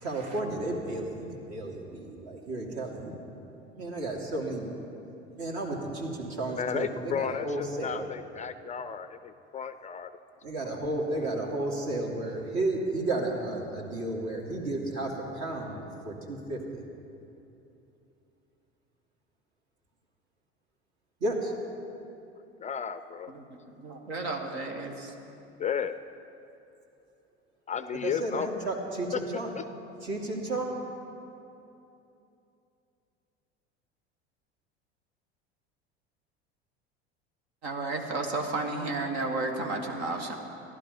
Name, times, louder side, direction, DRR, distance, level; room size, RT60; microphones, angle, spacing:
voice 1, 0.0-3.1 3.7-4.9 5.4-8.1 10.4-16.8 21.2-21.5 28.0-29.5 30.0-30.7, right 2 dB, 55° right, 0 dB, 2.5 m, -33 dB
voice 2, 6.6-10.1 10.6-10.7 22.6-23.3 25.6-25.9 27.7-28.6 29.6-29.7, left 7 dB, 25° left, 11 dB, 0.4 m, -33 dB
voice 3, 23.8-25.1 37.6-40.3, right 2 dB, 75° right, 2 dB, 1.5 m, -32 dB
15.0 x 11.5 x 5.3 m, 2.8 s
hypercardioid pair, 75°, 33 cm